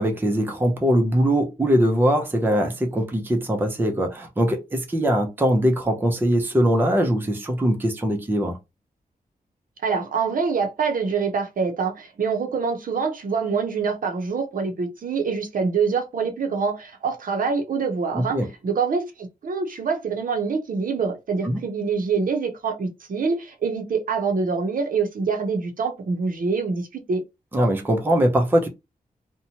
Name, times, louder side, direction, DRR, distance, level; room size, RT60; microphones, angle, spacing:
voice 1, 0.0-8.6 18.1-18.5 21.4-21.6 27.5-28.7, equal, 15° right, 0.5 m, -21 dB
voice 2, 9.8-27.2, right 5 dB, 60° right, 0.6 m, -25 dB
2.8 x 2.1 x 2.7 m
wide cardioid pair, 165°, 16 cm